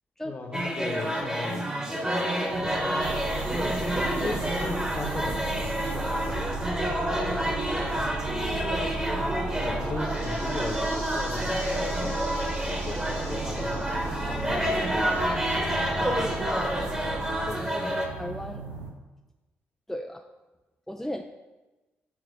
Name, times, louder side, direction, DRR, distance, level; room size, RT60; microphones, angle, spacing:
voice 1, 0.2-3.3 4.2-6.5 7.3-7.5 9.6-16.2 17.5-17.7, left 3 dB, 35° left, 3 dB, 1.1 m, -38 dB
sound 1, 0.5-18.1, equal, 15° right, 1.3 m, -29 dB
sound 2, 2.5-18.9, right 4 dB, 90° right, 0.6 m, -40 dB
sound 3, 3.0-17.6, right 2 dB, 45° right, 1.4 m, -35 dB
voice 2, 18.2-18.6 19.9-20.2 20.9-21.2, left 1 dB, 5° left, 3 dB, 0.4 m, -35 dB
7.2 x 2.8 x 5.2 m, 1.1 s
hypercardioid pair, 40°, 5 cm